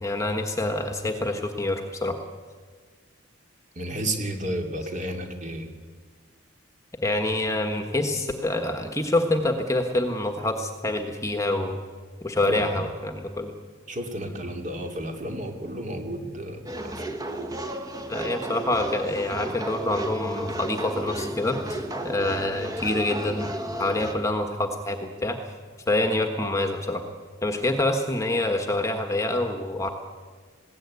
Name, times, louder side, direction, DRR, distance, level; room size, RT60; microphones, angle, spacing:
voice 1, 0.0-2.1 7.0-11.8 12.2-13.5 18.1-23.5 23.8-25.4 25.9-27.0 27.4-29.9, left 2 dB, 15° left, 5 dB, 1.4 m, -26 dB
voice 2, 3.8-5.7 12.4-12.9 13.9-17.2, right 1 dB, 35° right, 4 dB, 2.6 m, -32 dB
sound 1, 16.7-24.1, right 1 dB, 15° right, 1.5 m, -33 dB
20.5 x 16.5 x 9.6 m, 1.5 s
head